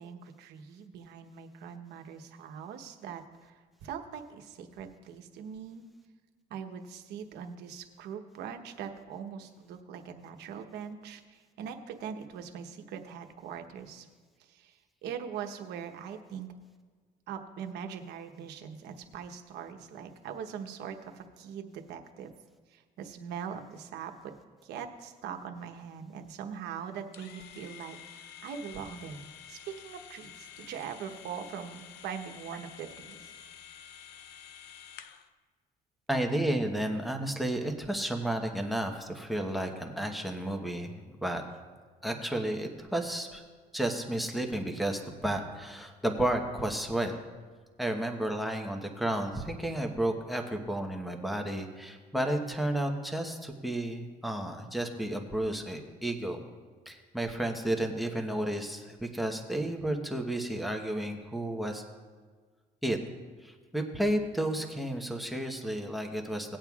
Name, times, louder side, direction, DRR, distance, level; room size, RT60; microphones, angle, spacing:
voice 1, 0.0-5.9 6.5-14.1 14.4-16.5 17.3-22.3 22.7-24.3 24.6-33.3, right 7 dB, 80° right, 5 dB, 1.1 m, -42 dB
sound 1, 27.1-35.3, left 9 dB, 80° left, 0.7 m, -49 dB
voice 2, 36.1-41.4 42.0-43.4 43.7-47.1 47.8-56.4 56.9-61.8 62.8-63.0 63.4-66.6, right 1 dB, ahead, 4 dB, 1.1 m, -32 dB
18.5 x 8.8 x 2.4 m, 1.5 s
cardioid pair, 110°, 17 cm